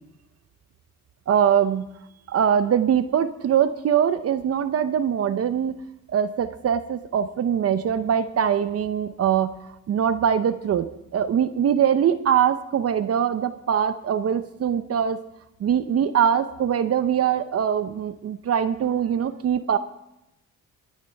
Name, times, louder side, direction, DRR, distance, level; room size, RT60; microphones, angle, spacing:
voice 1, 1.3-1.9 2.3-5.7 6.1-9.5 9.9-15.2 15.6-19.8, right 8 dB, 55° right, 11 dB, 0.7 m, -22 dB
23.0 x 9.5 x 3.5 m, 0.88 s
cardioid pair, 90°, 30 cm